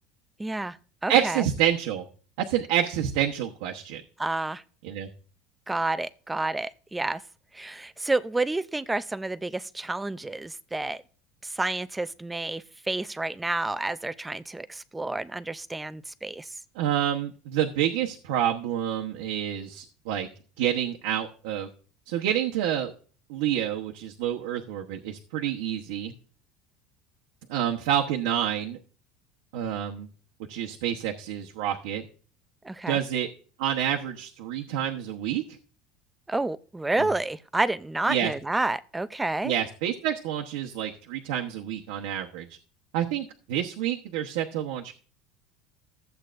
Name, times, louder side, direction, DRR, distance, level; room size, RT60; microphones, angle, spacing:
voice 1, 0.4-1.5 4.2-4.6 5.7-7.2 7.5-11.0 11.4-16.5 32.6-33.0 36.3-39.5, right 2 dB, 10° right, 0.4 m, -30 dB
voice 2, 1.1-2.0 2.4-4.0 4.8-5.1 16.7-20.3 20.6-21.7 22.1-22.9 23.3-26.1 27.5-28.8 29.5-30.1 30.5-32.0 32.9-33.3 33.6-35.4 37.0-37.1 38.1-38.3 39.4-42.5 42.9-44.9, right 10 dB, 80° right, 1.0 m, -28 dB
14.5 x 8.0 x 2.6 m
cardioid pair, 150°, 0 cm